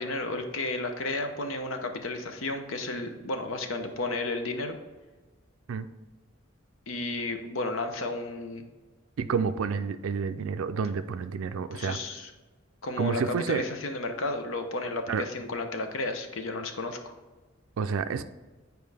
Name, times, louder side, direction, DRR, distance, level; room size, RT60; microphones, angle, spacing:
voice 1, 0.0-4.8 6.9-8.7 11.7-12.3 12.8-17.1, left 2 dB, 90° left, 6 dB, 0.8 m, -32 dB
voice 2, 9.2-12.0 13.0-13.6 15.1-15.2 17.8-18.3, right 6 dB, 90° right, 10 dB, 0.4 m, -29 dB
9.3 x 4.6 x 3.4 m, 1.3 s
head